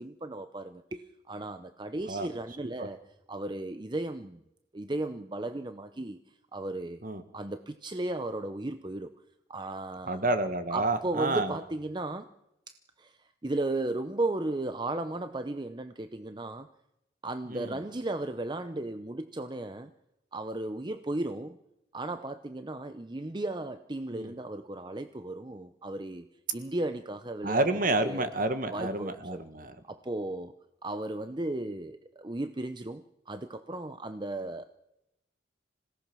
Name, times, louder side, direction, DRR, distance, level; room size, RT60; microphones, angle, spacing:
voice 1, 0.0-3.0 3.3-4.4 4.7-7.0 7.3-9.1 9.5-10.3 10.7-12.3 12.7-16.7 17.2-19.9 20.3-21.6 21.9-26.3 26.5-28.3 28.7-29.4 29.9-30.5 30.8-34.7, right 2 dB, 25° right, 9 dB, 0.7 m, -35 dB
voice 2, 10.1-11.5 17.5-17.8 24.1-24.3 27.4-29.8, right 2 dB, 45° right, 9 dB, 1.7 m, -29 dB
26.5 x 17.5 x 6.2 m, 0.88 s
head